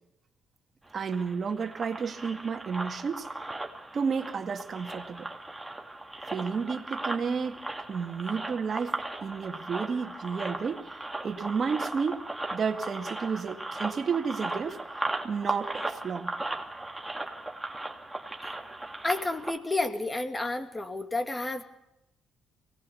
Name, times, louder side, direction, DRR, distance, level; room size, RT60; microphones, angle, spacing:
sound 1, 0.9-19.6, right 2 dB, 10° right, 2.9 m, -37 dB
voice 1, 0.9-3.3 3.9-5.3 6.3-7.6 7.9-9.0 9.2-10.9 11.2-12.2 12.5-14.8 15.2-16.4, right 5 dB, 45° right, 2.1 m, -31 dB
voice 2, 19.0-21.6, left 2 dB, 20° left, 2.7 m, -31 dB
24.0 x 18.5 x 7.2 m
supercardioid pair, 65°, 0 cm